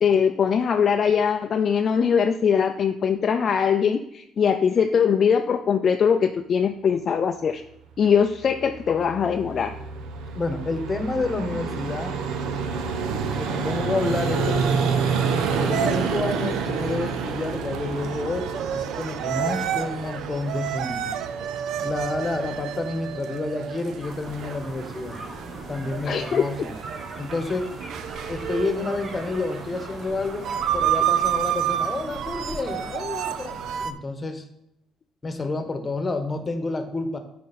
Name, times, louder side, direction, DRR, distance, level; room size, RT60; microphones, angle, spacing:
voice 1, 0.0-7.6 8.0-9.7 26.1-26.4, left 7 dB, 45° left, 6 dB, 0.5 m, -21 dB
Vehicle, 8.4-23.1, right 5 dB, 85° right, 0.9 m, -29 dB
voice 2, 10.3-12.2 13.1-14.9 15.6-21.1 21.8-25.2 25.7-26.7 27.2-27.8 28.3-33.6 33.8-34.4 35.2-37.2, left 3 dB, 25° left, 8 dB, 1.2 m, -29 dB
sound 1, 15.7-33.9, right 10 dB, 70° right, 0.5 m, -30 dB
sound 2, 24.0-33.9, right 1 dB, 30° right, 2.0 m, -40 dB
8.6 x 5.2 x 4.2 m, 0.81 s
cardioid pair, 110°, 0 cm